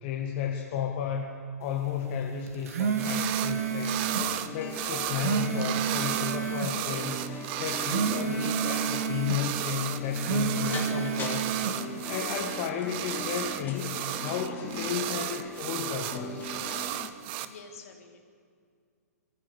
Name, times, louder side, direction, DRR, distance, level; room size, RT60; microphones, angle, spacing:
voice 1, 0.0-4.2 4.5-7.3 7.6-11.5 11.9-16.5, left 7 dB, 45° left, 2 dB, 2.0 m, -33 dB
sound 1, 2.5-4.3 4.9-6.7 7.6-9.4 10.0-11.8, right 6 dB, 60° right, 2.4 m, -30 dB
sound 2, 3.0-3.5 3.8-17.5, right 13 dB, 40° right, 1.2 m, -34 dB
sound 3, 3.5-17.1, left 3 dB, 20° left, 3.1 m, -40 dB
voice 2, 17.4-18.3, left 4 dB, 60° left, 4 dB, 3.4 m, -49 dB
23.0 x 15.0 x 8.4 m, 2.2 s
hypercardioid pair, 125°, 9 cm